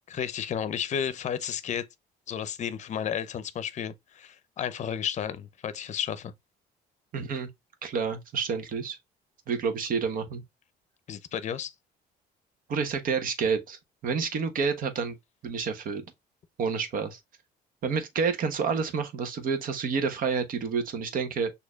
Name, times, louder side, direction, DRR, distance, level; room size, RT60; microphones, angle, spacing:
voice 1, 0.1-1.8 2.3-6.3 11.1-11.7, left 8 dB, 45° left, 0.7 m, -32 dB
voice 2, 7.1-7.5 7.8-9.0 9.5-10.4 12.7-15.1 15.4-16.0 16.6-17.2 17.8-21.5, right 5 dB, 55° right, 1.1 m, -29 dB
6.3 x 2.8 x 2.3 m
cardioid pair, 110°, 17 cm